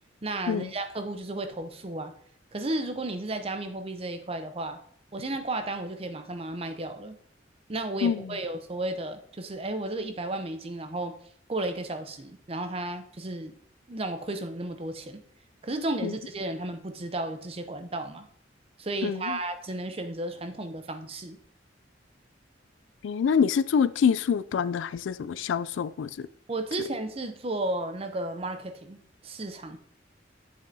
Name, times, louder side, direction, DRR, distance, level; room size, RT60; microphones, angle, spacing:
voice 1, 0.2-2.1 2.5-4.8 5.1-7.2 7.7-11.2 11.5-13.5 13.9-15.2 15.6-18.3 18.8-21.4 26.5-29.0 29.2-29.8, right 2 dB, 30° right, 0.6 m, -33 dB
voice 2, 8.0-8.4 16.0-16.1 19.0-19.4 23.0-26.3, left 7 dB, 85° left, 0.3 m, -26 dB
7.7 x 7.6 x 2.7 m
head